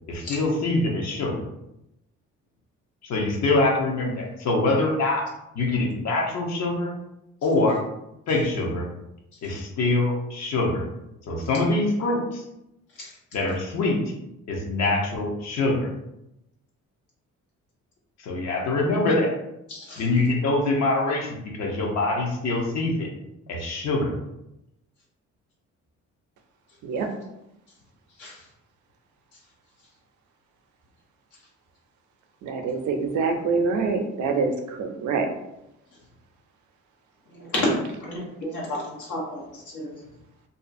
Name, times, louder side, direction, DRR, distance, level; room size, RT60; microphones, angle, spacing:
voice 1, 0.1-1.4 3.0-5.2 5.5-6.9 7.4-7.8 8.3-8.9 9.4-10.8 11.3-12.4 13.3-14.0 14.5-15.9 18.2-19.3 20.0-23.1 23.5-24.1, left 2 dB, 60° left, 0 dB, 0.8 m, -24 dB
voice 2, 19.7-20.0 28.2-28.4 37.3-37.7 38.0-40.0, left 1 dB, 85° left, -4 dB, 1.0 m, -31 dB
voice 3, 32.4-35.3, right 4 dB, 75° right, 5 dB, 0.5 m, -25 dB
2.6 x 2.3 x 2.5 m, 0.86 s
cardioid pair, 90°, 30 cm